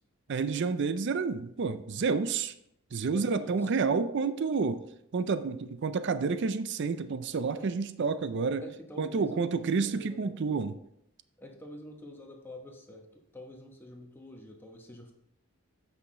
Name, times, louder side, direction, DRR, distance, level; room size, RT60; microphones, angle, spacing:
voice 1, 0.3-2.5 2.9-4.8 5.1-8.6 9.0-10.8, right 4 dB, 55° right, 12 dB, 0.4 m, -29 dB
voice 2, 3.1-3.7 7.5-7.7 8.6-10.4 11.4-15.1, left 1 dB, 10° left, 1 dB, 1.0 m, -47 dB
8.3 x 5.8 x 3.7 m, 0.77 s
head